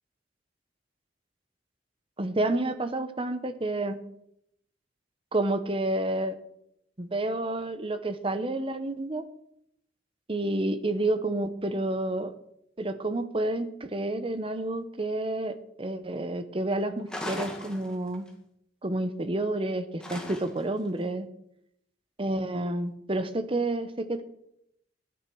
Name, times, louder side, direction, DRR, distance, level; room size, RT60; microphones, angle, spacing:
voice 1, 2.2-4.0 5.3-6.4 7.0-9.2 10.3-12.3 12.8-18.3 18.8-21.3 22.2-24.2, right 2 dB, 30° right, 10 dB, 0.9 m, -29 dB
sound 1, 17.1-18.3 20.0-20.8, left 1 dB, 5° left, 2.1 m, -38 dB
12.5 x 9.6 x 6.2 m, 0.76 s
head